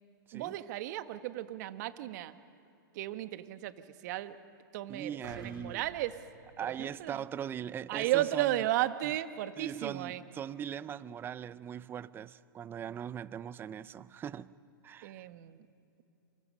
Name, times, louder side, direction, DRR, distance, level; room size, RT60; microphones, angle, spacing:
voice 1, 0.3-2.4 2.9-4.4 4.7-6.1 6.8-7.2 7.9-10.2 15.0-15.7, right 14 dB, 50° right, 1.4 m, -34 dB
voice 2, 4.9-5.8 6.6-8.6 9.0-9.1 9.6-14.5 14.8-15.3, right 9 dB, 20° right, 0.6 m, -40 dB
sound 1, 5.2-7.4 7.9-8.0, right 3 dB, 80° right, 7.1 m, -52 dB
28.5 x 27.5 x 5.5 m
hypercardioid pair, 125°, 12 cm